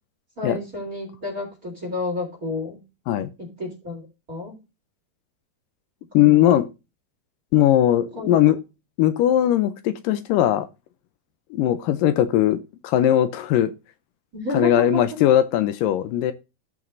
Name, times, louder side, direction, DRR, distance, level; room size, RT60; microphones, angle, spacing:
voice 1, 0.4-2.8 3.4-4.6 6.1-6.4 8.1-8.5 14.3-15.0, left 1 dB, 25° right, 3.9 m, -30 dB
voice 2, 6.1-6.7 7.5-8.6 9.0-10.7 11.5-13.7 14.5-16.3, left 12 dB, 80° left, 2.1 m, -19 dB
14.5 x 6.1 x 2.6 m
omnidirectional pair, 4.4 m